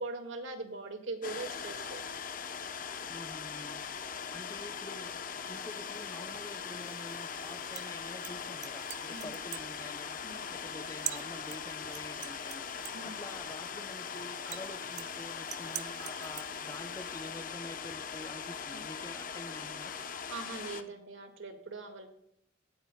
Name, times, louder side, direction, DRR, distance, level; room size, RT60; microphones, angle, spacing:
voice 1, 0.0-2.0 9.1-9.3 10.2-10.5 12.9-13.2 18.7-18.8 20.3-22.1, right 3 dB, 85° right, 1.8 m, -41 dB
sound 1, 1.2-20.8, left 6 dB, 45° left, 0.8 m, -40 dB
voice 2, 3.1-3.9 4.3-5.2 5.5-10.3 10.5-12.7 13.0-19.9, left 1 dB, 15° left, 0.5 m, -47 dB
sound 2, 5.6-17.3, right 11 dB, 40° right, 0.5 m, -47 dB
18.0 x 9.6 x 2.2 m
head